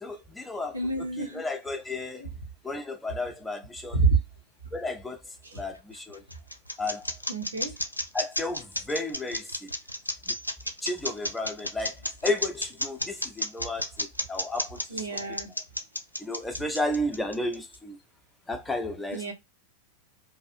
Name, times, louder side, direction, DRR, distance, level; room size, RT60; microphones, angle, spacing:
voice 1, 0.0-2.2 2.6-4.0 4.7-6.2 6.8-7.1 8.1-9.7 10.3-10.4 10.8-15.1 16.2-18.0 18.5-19.3, left 2 dB, 10° left, 0.4 m, -33 dB
voice 2, 0.7-1.4 2.2-2.3 3.9-4.2 5.4-5.6 7.3-7.7 14.9-15.5 19.1-19.3, right 4 dB, 75° right, 0.7 m, -27 dB
sound 1, 5.7-17.7, left 1 dB, 85° left, 0.3 m, -32 dB
2.6 x 2.3 x 2.5 m
figure-of-eight pair, 90°, 0 cm